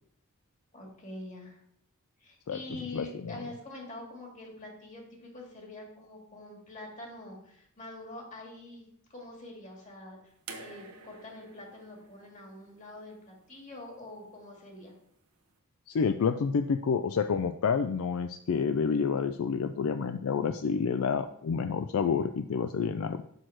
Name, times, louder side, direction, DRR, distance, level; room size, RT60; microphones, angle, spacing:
voice 1, 0.7-1.6 2.2-10.2 10.6-14.9, left 2 dB, 35° left, 0 dB, 2.0 m, -45 dB
voice 2, 2.9-3.4 15.9-23.2, left 6 dB, 65° left, 9 dB, 0.4 m, -29 dB
sound 1, 10.5-13.6 14.8-14.9, right 4 dB, 80° right, 1.1 m, -49 dB
6.4 x 6.4 x 4.5 m, 0.70 s
head